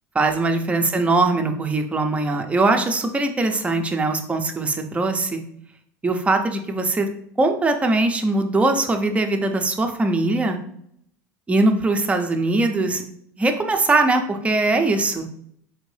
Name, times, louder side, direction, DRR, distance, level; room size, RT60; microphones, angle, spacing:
voice 1, 0.1-5.4 6.0-7.1 7.4-10.6 11.5-13.0 13.4-15.3, right 2 dB, 15° right, 5 dB, 0.5 m, -21 dB
4.5 x 2.5 x 3.2 m, 0.70 s
supercardioid pair, 110°, 8 cm